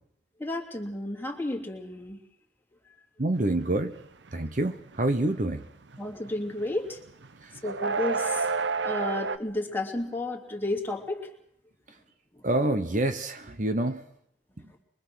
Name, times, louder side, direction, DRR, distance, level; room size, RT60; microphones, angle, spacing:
voice 1, 0.4-2.2 6.0-7.0 7.6-8.5 8.8-11.3, left 2 dB, 10° left, 1 dB, 2.8 m, -32 dB
voice 2, 3.2-3.9 4.3-5.6 12.4-14.0, right 1 dB, 45° right, 8 dB, 1.0 m, -27 dB
sound 1, 3.6-4.0 4.3-6.7 7.1-9.4, right 4 dB, 85° right, 0.8 m, -30 dB
24.5 x 22.5 x 6.3 m, 0.69 s
head